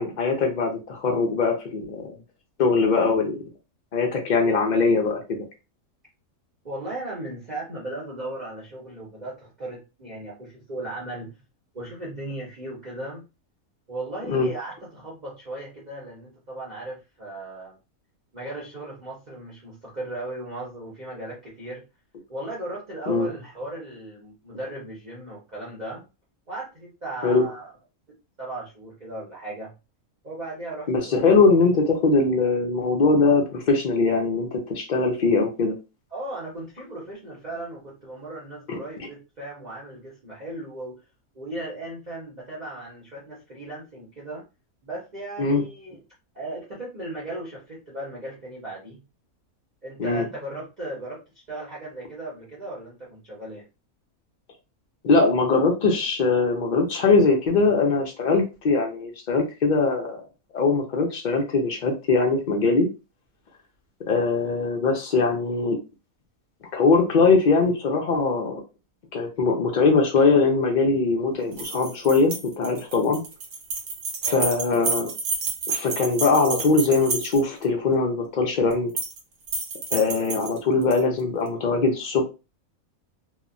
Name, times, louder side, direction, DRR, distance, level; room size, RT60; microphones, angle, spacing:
voice 1, 0.0-2.1 2.6-3.4 3.9-5.4 14.3-14.5 23.1-23.3 27.2-27.4 30.9-35.7 38.7-38.8 45.4-45.6 50.0-50.2 55.0-60.2 60.5-62.9 64.1-65.8 66.7-68.6 69.1-73.2 74.3-75.1 75.7-78.9 79.9-82.2, left 4 dB, 90° left, 2 dB, 0.4 m, -21 dB
voice 2, 6.6-11.3 11.7-13.3 13.9-17.8 18.3-21.8 22.3-26.0 26.5-27.7 28.4-29.7 30.2-31.4 36.1-40.9 41.3-44.4 44.8-46.0 46.3-49.0 49.8-51.2 51.5-53.6 74.2-74.7, right 2 dB, 40° right, -6 dB, 0.8 m, -36 dB
sound 1, 71.5-77.6 78.7-79.2 79.5-81.0, right 4 dB, 75° right, 1.1 m, -30 dB
2.9 x 2.0 x 2.5 m, 0.29 s
omnidirectional pair, 1.5 m